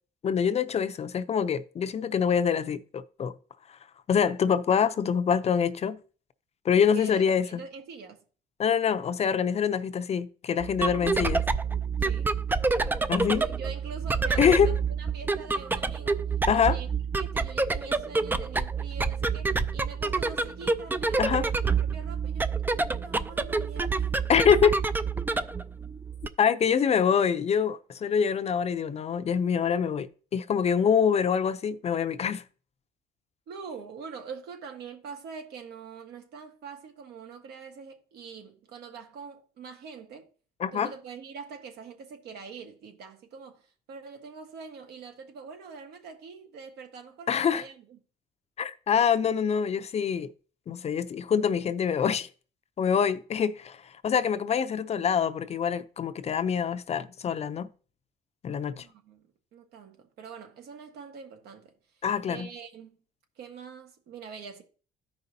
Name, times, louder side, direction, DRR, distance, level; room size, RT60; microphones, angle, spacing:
voice 1, 0.2-3.3 4.1-6.0 6.6-7.6 8.6-11.4 13.1-13.4 14.4-14.7 16.5-16.8 21.2-21.5 24.3-24.8 26.4-32.4 40.6-40.9 47.3-47.6 48.6-50.3 50.7-52.3 52.8-57.7 58.4-58.8 62.0-62.5, left 7 dB, 40° left, 0.6 m, -25 dB
voice 2, 6.8-8.2 12.0-12.4 13.3-16.2 16.5-16.9 17.2-22.5 22.9-24.2 26.4-26.6 33.5-40.3 40.7-48.0 58.8-61.7 62.2-62.9 63.4-64.6, right 5 dB, 75° right, 1.6 m, -44 dB
sound 1, 10.6-26.3, right 4 dB, 10° right, 0.4 m, -28 dB
13.5 x 5.3 x 2.8 m
cardioid pair, 110°, 17 cm